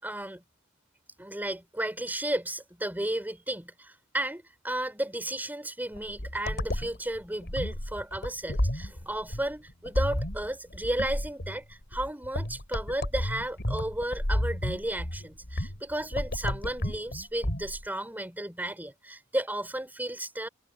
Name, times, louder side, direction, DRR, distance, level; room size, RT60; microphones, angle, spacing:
voice 1, 0.0-0.4 1.2-20.5, right 1 dB, 10° right, 5.4 m, -33 dB
sound 1, 5.9-17.8, left 1 dB, 55° left, 3.9 m, -32 dB
head